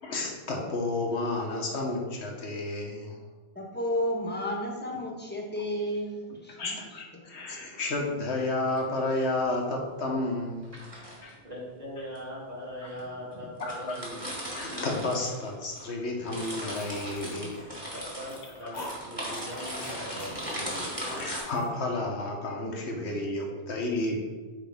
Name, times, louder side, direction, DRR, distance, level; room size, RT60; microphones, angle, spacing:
voice 1, 0.0-3.2 6.5-10.7 11.2-11.4 13.6-14.1 14.5-17.6 18.6-18.7 20.7-24.2, left 2 dB, 75° left, 1 dB, 1.4 m, -31 dB
voice 2, 3.5-6.8 7.1-7.2, equal, 10° left, -1 dB, 1.1 m, -32 dB
sound 1, 8.5-8.8 10.6-11.3 12.2-12.3 13.0-13.1 13.3-13.4 13.6-15.9 16.1-21.4, equal, 20° right, 1.9 m, -38 dB
voice 3, 11.4-13.5 13.8-14.2 17.9-18.7 19.0-20.9, equal, 35° right, -6 dB, 2.2 m, -40 dB
sound 2, 16.4-19.0 19.3-21.7, left 2 dB, 40° left, 1.0 m, -44 dB
8.0 x 4.9 x 3.5 m, 1.3 s
omnidirectional pair, 1.1 m